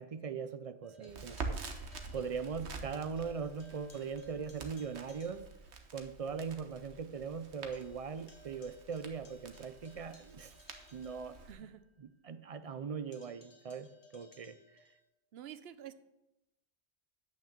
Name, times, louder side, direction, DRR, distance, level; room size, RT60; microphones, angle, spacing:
voice 1, 0.0-5.5 5.9-10.5 10.9-11.4 12.2-14.6, right 6 dB, 50° right, 11 dB, 0.4 m, -40 dB
sound 1, 0.8-2.9 3.2-5.8 6.3-6.4 6.8-6.9 7.1-11.9 13.1-15.0, left 2 dB, 75° left, 1.7 m, -62 dB
voice 2, 1.0-1.3 11.5-11.8 15.3-15.9, right 10 dB, 70° right, 14 dB, 0.9 m, -49 dB
Crackle, 1.1-11.5, right 4 dB, 90° right, 1.3 m, -47 dB
9.1 x 6.0 x 7.3 m, 0.94 s
omnidirectional pair, 1.1 m